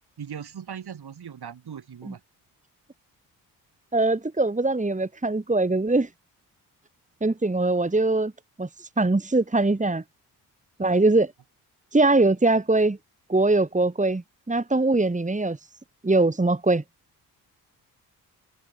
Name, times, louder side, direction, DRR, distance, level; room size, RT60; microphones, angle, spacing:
voice 1, 0.2-2.2, right 8 dB, 55° right, 7.3 m, -39 dB
voice 2, 3.9-6.1 7.2-8.3 8.6-10.0 10.8-11.3 11.9-13.0 13.3-15.6 16.0-16.8, right 2 dB, 15° right, 2.2 m, -22 dB
hypercardioid pair, 45°, 45 cm